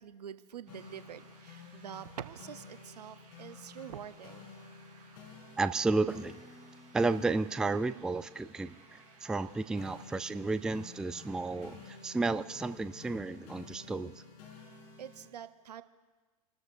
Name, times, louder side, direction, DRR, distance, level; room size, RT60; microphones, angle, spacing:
voice 1, 0.0-4.5 14.7-15.8, right 9 dB, 80° right, 12 dB, 0.8 m, -46 dB
sound 1, 0.6-14.3, right 6 dB, 40° right, 5.1 m, -62 dB
sound 2, 0.7-15.3, left 5 dB, 55° left, 3.6 m, -53 dB
voice 2, 5.6-6.4 6.9-14.1, right 3 dB, 5° right, 12 dB, 0.3 m, -32 dB
29.0 x 13.0 x 2.7 m, 1.3 s
hypercardioid pair, 100°, 20 cm